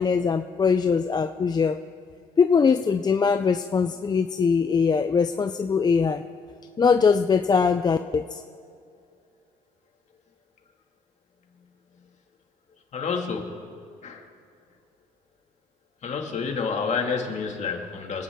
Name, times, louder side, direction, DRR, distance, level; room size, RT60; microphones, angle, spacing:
voice 1, 0.0-1.8 2.4-6.2 6.8-8.4, left 5 dB, 25° left, 9 dB, 0.4 m, -22 dB
voice 2, 12.9-13.5 14.0-14.3 16.0-18.2, left 5 dB, 45° left, 2 dB, 2.2 m, -29 dB
26.0 x 10.0 x 3.7 m, 2.4 s
cardioid pair, 110°, 17 cm